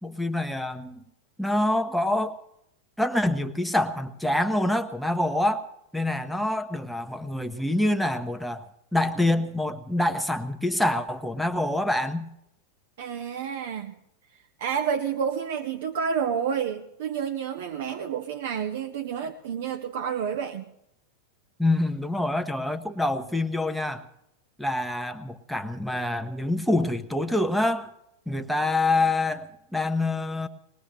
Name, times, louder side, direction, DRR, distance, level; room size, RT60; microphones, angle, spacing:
voice 1, 0.0-1.0 1.4-2.4 3.0-5.6 5.9-8.6 8.9-12.3 21.6-24.1 24.6-27.9 28.3-30.5, left 1 dB, ahead, 7 dB, 1.0 m, -26 dB
voice 2, 13.0-13.9 14.6-20.6, right 7 dB, 55° right, 6 dB, 0.8 m, -29 dB
21.0 x 20.0 x 3.2 m, 0.80 s
figure-of-eight pair, 90°, 0 cm